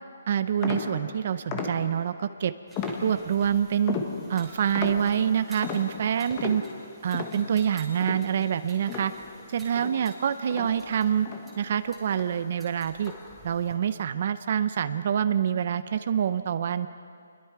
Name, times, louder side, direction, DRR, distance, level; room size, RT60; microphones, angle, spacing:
voice 1, 0.3-2.5 3.0-4.0 4.3-6.6 7.0-9.1 9.5-11.3 11.6-13.1 13.4-16.9, right 8 dB, 40° right, 12 dB, 0.6 m, -26 dB
sound 1, 0.6-2.2 2.8-3.5 3.9-9.5 9.8-11.8 12.1-12.5 13.0-13.5, left 5 dB, 20° left, 1.4 m, -36 dB
sound 2, 2.7-13.8, right 1 dB, ahead, 2.9 m, -51 dB
28.5 x 21.5 x 4.7 m, 2.2 s
hypercardioid pair, 170°, 0 cm